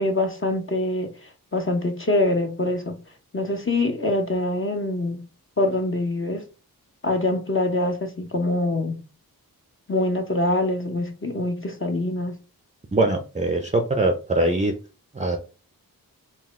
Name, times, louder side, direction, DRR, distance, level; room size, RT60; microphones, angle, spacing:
voice 1, 0.0-3.0 3.3-5.2 5.6-6.4 7.0-9.0 9.9-12.4, left 2 dB, 35° left, 0.8 m, -24 dB
voice 2, 12.9-14.7 15.1-15.4, right 2 dB, 20° right, 0.6 m, -22 dB
4.0 x 2.3 x 3.6 m
wide cardioid pair, 55°, 37 cm